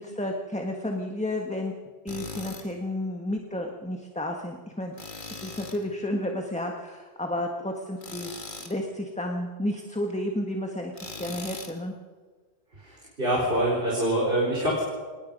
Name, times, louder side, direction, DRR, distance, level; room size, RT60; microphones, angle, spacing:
voice 1, 0.0-1.7 2.0-5.0 5.3-11.9, left 1 dB, 5° left, 2 dB, 1.5 m, -32 dB
Tools, 2.1-2.7 5.0-5.8 8.0-8.8 11.0-11.8, left 3 dB, 45° left, 2.2 m, -39 dB
voice 2, 12.7-14.8, right 1 dB, 50° right, -3 dB, 4.6 m, -25 dB
26.5 x 19.5 x 5.4 m, 1.4 s
omnidirectional pair, 1.2 m